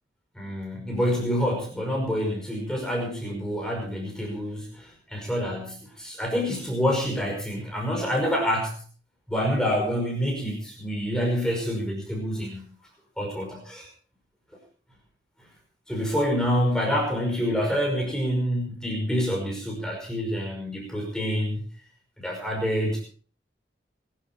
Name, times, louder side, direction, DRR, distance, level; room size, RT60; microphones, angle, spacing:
voice 1, 0.4-8.7 9.3-12.6 13.2-13.9 15.9-21.6 22.2-23.0, equal, 5° left, -1 dB, 5.5 m, -27 dB
22.0 x 11.5 x 4.6 m, 0.40 s
head